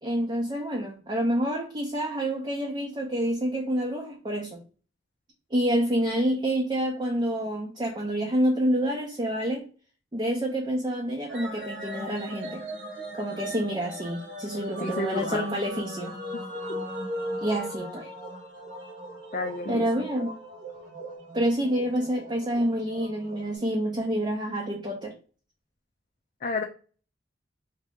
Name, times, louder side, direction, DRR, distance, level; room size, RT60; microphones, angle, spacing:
voice 1, 0.0-4.6 5.5-9.7 10.1-12.7 13.1-16.2 17.4-18.1 19.7-20.3 21.3-25.1, right 1 dB, 25° right, 0.6 m, -28 dB
sound 1, 11.3-23.6, equal, 70° right, 1.6 m, -38 dB
voice 2, 14.8-15.5 16.3-16.4 19.3-20.1 26.4-26.6, left 3 dB, 45° left, 0.5 m, -31 dB
3.5 x 2.8 x 3.5 m
head